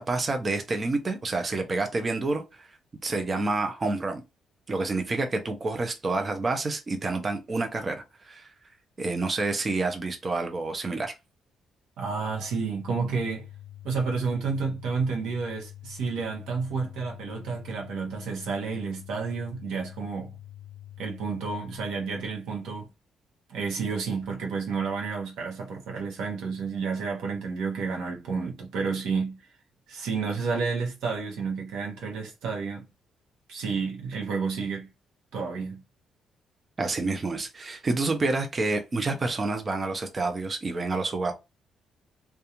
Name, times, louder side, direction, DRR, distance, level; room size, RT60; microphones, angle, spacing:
voice 1, 0.0-2.7 3.0-4.2 4.7-8.5 9.0-11.1 36.8-41.3, right 3 dB, 35° right, 0.5 m, -28 dB
voice 2, 12.0-13.5 13.8-20.3 21.0-22.9 23.5-29.5 29.9-32.9 33.5-34.9 35.3-35.8, right 5 dB, 85° right, 0.8 m, -30 dB
sound 1, 12.2-22.2, left 13 dB, 80° left, 0.4 m, -46 dB
2.4 x 2.2 x 2.9 m
cardioid pair, 90°, 0 cm